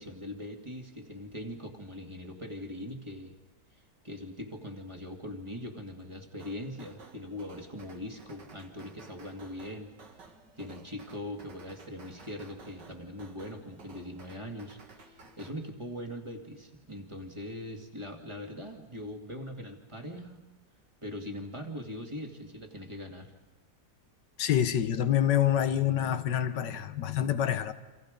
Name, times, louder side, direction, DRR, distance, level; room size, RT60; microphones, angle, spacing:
voice 1, 0.0-3.3 4.0-9.9 10.6-20.4 21.0-23.3, left 1 dB, 15° right, 2.4 m, -41 dB
sound 1, 6.4-15.5, right 3 dB, 85° right, 2.8 m, -54 dB
voice 2, 24.4-27.7, left 10 dB, 90° left, 1.7 m, -27 dB
28.5 x 26.0 x 5.2 m
omnidirectional pair, 1.8 m